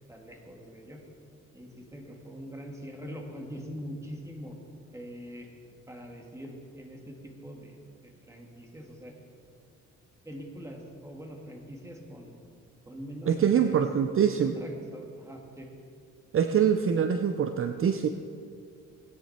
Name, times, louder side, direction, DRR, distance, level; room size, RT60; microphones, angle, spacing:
voice 1, 0.1-1.0 1.5-4.6 4.9-5.5 5.9-9.2 10.2-12.3 12.9-13.9 14.4-15.7, equal, 10° right, 1 dB, 2.3 m, -43 dB
voice 2, 13.3-14.6 16.3-18.1, right 8 dB, 45° right, 8 dB, 0.6 m, -24 dB
17.5 x 10.5 x 4.4 m, 2.3 s
cardioid pair, 90°, 30 cm